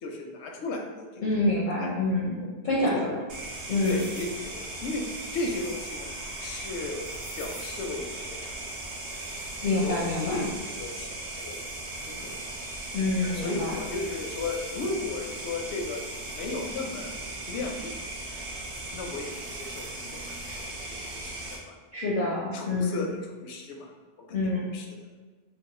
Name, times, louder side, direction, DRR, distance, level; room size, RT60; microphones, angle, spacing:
voice 1, 0.0-1.3 1.8-1.9 2.4-2.6 2.9-3.0 3.8-5.0 5.3-6.1 6.4-7.1 7.4-8.8 9.7-12.3 13.2-16.0 16.3-17.1 17.5-17.9 18.9-21.8 22.5-23.9 24.3-24.9, left 3 dB, 85° left, 2 dB, 0.9 m, -35 dB
voice 2, 1.2-2.4 2.6-3.2 3.7-4.0 9.6-10.5 12.9-13.7 21.9-23.1 24.3-24.7, left 2 dB, 55° left, -4 dB, 0.6 m, -27 dB
sound 1, 3.3-21.6, right 2 dB, 80° right, 0.9 m, -38 dB
2.9 x 2.3 x 3.6 m, 1.4 s
omnidirectional pair, 1.1 m